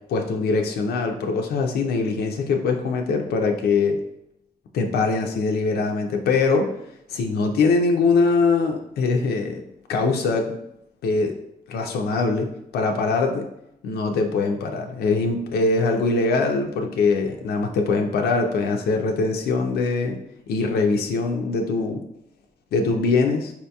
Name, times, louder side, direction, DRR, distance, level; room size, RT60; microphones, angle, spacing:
voice 1, 0.1-4.0 4.7-6.7 7.1-9.6 9.9-10.6 11.0-11.3 11.7-13.4 13.8-20.2 20.5-22.0 22.7-23.5, left 4 dB, 90° left, 3 dB, 0.4 m, -22 dB
4.3 x 2.7 x 2.2 m, 0.81 s
cardioid pair, 75°, 16 cm